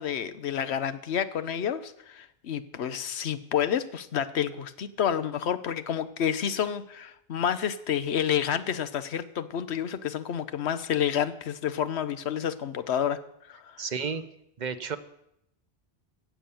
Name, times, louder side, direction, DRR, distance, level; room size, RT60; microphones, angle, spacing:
voice 1, 0.0-13.2 13.5-13.8, left 9 dB, 80° left, 13 dB, 1.1 m, -29 dB
voice 2, 13.8-14.2 14.6-15.0, right 6 dB, 45° right, 10 dB, 0.9 m, -31 dB
16.5 x 7.2 x 7.0 m, 0.79 s
omnidirectional pair, 1.1 m